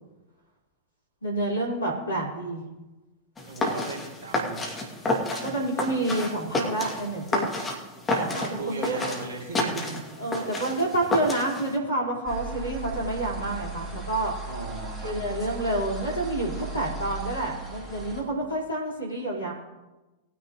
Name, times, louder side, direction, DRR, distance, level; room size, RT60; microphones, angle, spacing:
voice 1, 1.2-2.6 5.4-7.5 8.1-9.1 10.2-14.3 15.0-19.5, right 2 dB, 80° left, -3 dB, 4.7 m, -28 dB
sound 1, 3.4-11.8, left 2 dB, 15° left, 2.7 m, -30 dB
voice 2, 3.5-4.7 8.3-9.9 10.2-10.4 14.5-15.1, right 3 dB, 65° right, -2 dB, 2.9 m, -37 dB
sound 2, 12.2-18.2, right 2 dB, 15° right, 4.5 m, -37 dB
20.5 x 9.8 x 3.2 m, 1.1 s
figure-of-eight pair, 90°, 0 cm